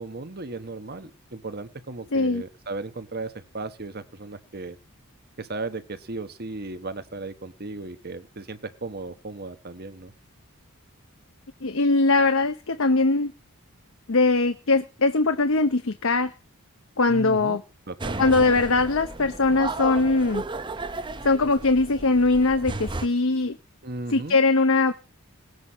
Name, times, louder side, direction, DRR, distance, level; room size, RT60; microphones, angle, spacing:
voice 1, 0.0-4.8 5.4-10.1 17.1-17.6 17.9-18.4 23.8-24.4, right 3 dB, 45° right, 11 dB, 1.2 m, -36 dB
voice 2, 2.1-2.4 11.6-13.3 14.1-16.3 17.0-17.6 18.2-20.4 21.2-23.6 24.1-24.9, left 3 dB, 60° left, 9 dB, 0.8 m, -21 dB
sound 1, 18.0-23.1, right 2 dB, 20° right, 0.6 m, -34 dB
19.0 x 8.1 x 5.6 m, 0.34 s
head